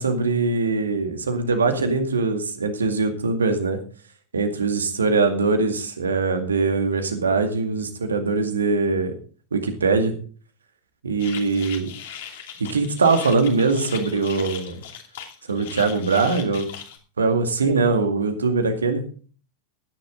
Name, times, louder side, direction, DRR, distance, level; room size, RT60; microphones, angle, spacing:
voice 1, 0.0-3.8 4.3-9.1 9.5-10.2 11.0-11.9 12.6-14.8 15.5-16.7 17.2-19.0, right 4 dB, 70° right, 6 dB, 2.1 m, -22 dB
sound 1, 11.2-17.0, left 9 dB, 55° left, 2.6 m, -38 dB
14.5 x 10.0 x 3.9 m, 0.40 s
figure-of-eight pair, 90°, 0 cm